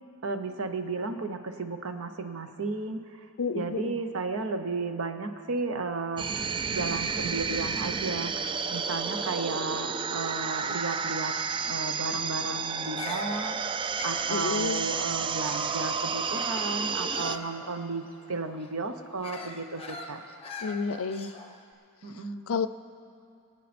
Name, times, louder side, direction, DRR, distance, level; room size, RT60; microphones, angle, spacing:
voice 1, 0.2-3.0 3.5-6.3 6.7-11.3 11.6-20.2 22.0-22.5, right 3 dB, 65° right, 7 dB, 0.9 m, -34 dB
voice 2, 3.4-3.9 14.3-14.9 20.6-21.3 22.5-22.7, left 5 dB, 65° left, 12 dB, 0.5 m, -30 dB
sound 1, 6.2-17.4, right 5 dB, 20° right, 0.3 m, -31 dB
Bird vocalization bird call bird song, 12.8-15.9 16.3-21.6, left 3 dB, 25° left, 1.0 m, -43 dB
23.0 x 8.9 x 4.3 m, 2.5 s
head